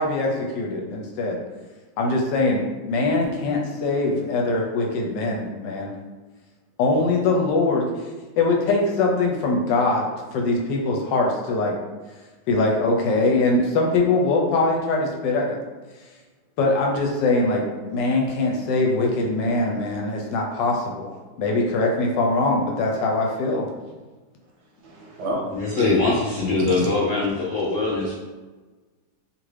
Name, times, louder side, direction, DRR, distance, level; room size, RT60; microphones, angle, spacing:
voice 1, 0.0-1.4 2.0-5.9 6.8-7.9 8.4-10.1 10.3-11.7 12.5-15.6 16.6-21.1 21.4-23.7, left 2 dB, 85° left, 0 dB, 1.3 m, -22 dB
voice 2, 24.8-25.9 26.6-26.9, right 1 dB, 75° right, -1 dB, 1.0 m, -31 dB
voice 3, 25.5-28.2, left 3 dB, 65° left, -6 dB, 0.8 m, -22 dB
2.8 x 2.5 x 3.2 m, 1.3 s
omnidirectional pair, 1.9 m